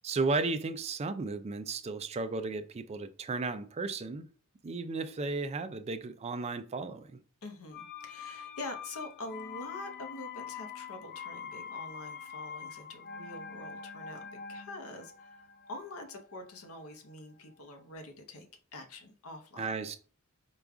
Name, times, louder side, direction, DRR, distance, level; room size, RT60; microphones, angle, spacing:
voice 1, 0.0-4.3 4.6-7.2 19.6-20.0, right 3 dB, 30° right, 0.3 m, -34 dB
voice 2, 7.4-19.7, left 2 dB, 70° left, 0.8 m, -45 dB
sound 1, 7.7-17.4 17.7-17.8, left 6 dB, 45° left, 0.4 m, -45 dB
4.9 x 2.3 x 3.5 m
head